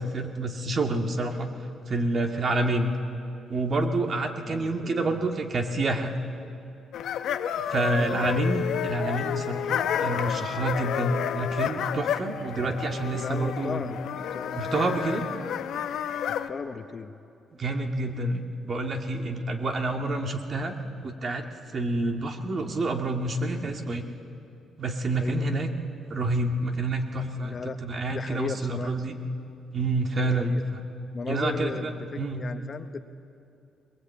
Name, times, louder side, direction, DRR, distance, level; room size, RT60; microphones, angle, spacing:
voice 1, 0.0-1.5 1.9-2.9 3.5-6.2 7.6-13.8 14.6-15.2 17.6-20.7 21.0-21.5 21.7-24.1 24.8-25.7 26.1-29.1 29.7-30.6 31.3-32.5, right 2 dB, 45° right, 3 dB, 2.1 m, -28 dB
voice 2, 4.4-5.2 7.8-8.8 13.1-14.0 14.3-14.6 16.3-17.1 19.6-19.7 25.1-25.6 27.4-29.1 30.2-30.6 31.1-33.0, left 5 dB, 40° left, 9 dB, 1.0 m, -37 dB
sound 1, 6.9-16.5, left 9 dB, 75° left, 0.9 m, -30 dB
21.0 x 21.0 x 8.4 m, 2.6 s
cardioid pair, 90°, 0 cm